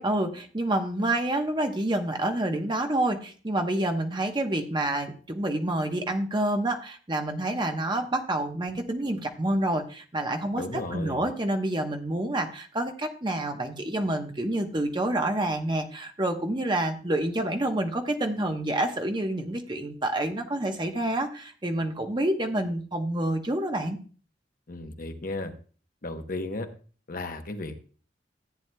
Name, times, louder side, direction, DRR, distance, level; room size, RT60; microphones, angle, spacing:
voice 1, 0.0-24.0, right 1 dB, 25° right, 5 dB, 1.0 m, -28 dB
voice 2, 10.5-11.2 24.7-25.5 26.0-26.7 27.1-27.8, left 2 dB, 50° left, 6 dB, 0.9 m, -34 dB
14.0 x 9.1 x 2.2 m, 0.39 s
head